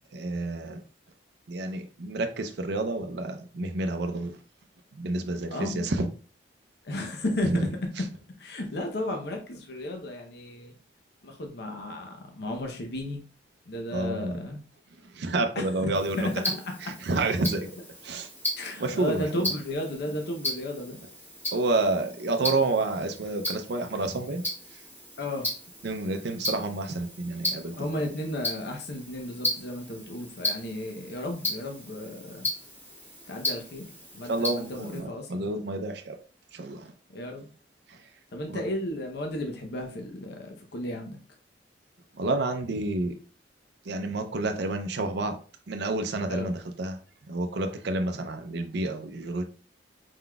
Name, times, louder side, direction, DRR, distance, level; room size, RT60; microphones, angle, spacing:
voice 1, 0.1-0.8 1.5-4.3 4.9-6.1 7.4-7.6 13.9-14.5 15.1-16.3 16.8-17.7 18.0-18.3 18.8-19.3 21.5-24.4 24.7-24.8 25.8-28.1 34.3-36.2 36.5-36.9 37.9-38.0 38.5-38.6 42.1-43.2 43.9-45.4 45.7-47.0 47.3-49.4, right 2 dB, 65° right, 6 dB, 0.5 m, -29 dB
voice 2, 5.5-5.9 6.8-7.7 8.4-10.7 11.2-13.2 13.7-14.6 15.6-15.7 16.2-16.3 16.8-16.9 18.6-21.0 25.2-25.5 27.8-32.5 33.3-35.5 37.1-37.5 38.3-41.2 46.3-46.5, left 1 dB, 60° left, 3 dB, 0.7 m, -34 dB
Tick-tock, 15.9-35.0, left 1 dB, 10° left, 1.4 m, -36 dB
4.6 x 3.9 x 2.2 m, 0.38 s
head